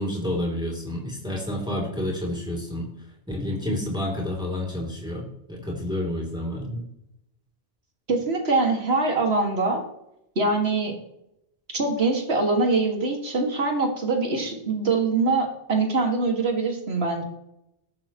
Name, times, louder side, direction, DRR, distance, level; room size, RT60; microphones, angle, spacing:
voice 1, 0.0-2.9 3.3-6.8, left 1 dB, 5° right, -2 dB, 3.0 m, -29 dB
voice 2, 8.1-9.8 10.4-10.9 11.7-17.2, right 3 dB, 65° right, 2 dB, 2.3 m, -23 dB
19.0 x 6.9 x 3.0 m, 0.83 s
omnidirectional pair, 1.1 m